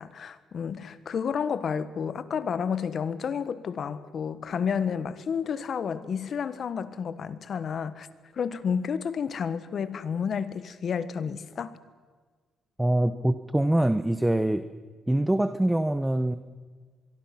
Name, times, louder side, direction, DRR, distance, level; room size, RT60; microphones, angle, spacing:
voice 1, 0.0-8.1 8.3-11.8, left 7 dB, 55° left, 14 dB, 1.3 m, -31 dB
voice 2, 12.8-14.7 15.1-16.4, right 1 dB, 10° right, 11 dB, 0.9 m, -24 dB
24.0 x 23.0 x 6.0 m, 1.5 s
cardioid pair, 90°, 0 cm